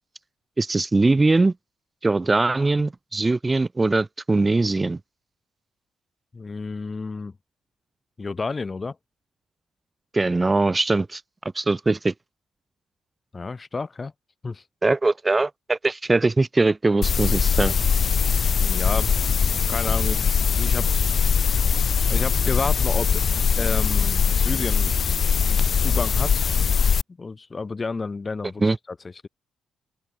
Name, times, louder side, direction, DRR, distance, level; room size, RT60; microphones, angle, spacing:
voice 1, 0.6-1.5 2.0-5.0 10.1-11.2 11.5-12.1 14.8-17.7 28.6-28.8, right 3 dB, 25° right, 1.5 m, -21 dB
voice 2, 6.3-7.3 8.2-9.0 13.3-14.1 14.4-14.6 17.6-17.7 18.6-19.1 19.5-21.1 22.1-23.2 23.6-24.9 25.5-26.5 27.2-28.6 28.9-29.0, left 4 dB, 30° left, 2.7 m, -31 dB
sound 1, 17.0-27.0, left 6 dB, 45° left, 1.5 m, -21 dB
open air
figure-of-eight pair, 40°, 0 cm